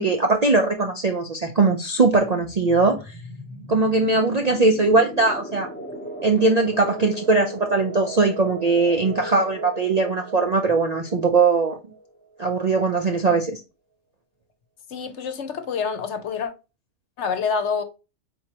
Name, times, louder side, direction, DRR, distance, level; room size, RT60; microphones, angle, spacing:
voice 1, 0.0-3.1 3.7-5.7 6.2-11.8 12.4-13.6, right 3 dB, 50° right, 0.5 m, -20 dB
sound 1, 2.4-12.9, right 1 dB, 10° left, 0.7 m, -37 dB
voice 2, 14.9-16.5 17.2-17.8, left 6 dB, 65° left, 1.0 m, -27 dB
4.4 x 4.0 x 2.8 m
omnidirectional pair, 1.4 m